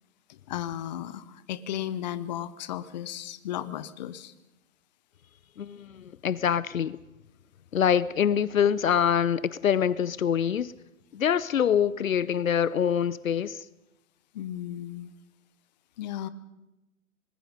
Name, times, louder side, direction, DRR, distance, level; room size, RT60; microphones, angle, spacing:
voice 1, 0.3-4.3 14.3-15.1 16.0-16.3, left 11 dB, 30° left, 14 dB, 0.9 m, -35 dB
voice 2, 5.6-7.0 7.7-10.7 11.1-13.7, left 8 dB, 70° left, 18 dB, 0.8 m, -25 dB
25.0 x 20.5 x 5.4 m, 0.98 s
figure-of-eight pair, 135°, 42 cm